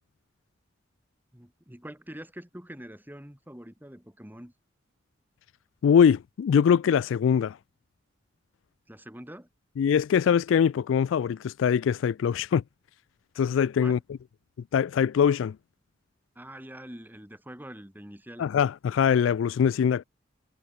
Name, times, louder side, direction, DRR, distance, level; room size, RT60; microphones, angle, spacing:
voice 1, 1.3-4.5 8.9-9.5 13.8-14.0 16.4-18.5, equal, 10° right, 3.8 m, -44 dB
voice 2, 5.8-7.6 9.8-12.6 13.4-14.0 14.7-15.6 18.4-20.0, left 7 dB, 75° left, 0.3 m, -22 dB
head